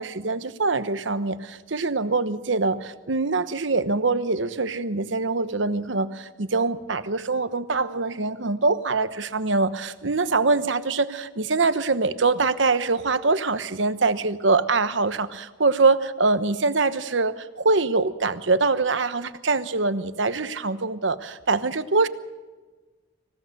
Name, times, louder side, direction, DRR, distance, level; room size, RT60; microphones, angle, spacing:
voice 1, 0.0-22.1, right 3 dB, 70° right, 12 dB, 1.1 m, -24 dB
26.5 x 16.5 x 6.7 m, 1.3 s
head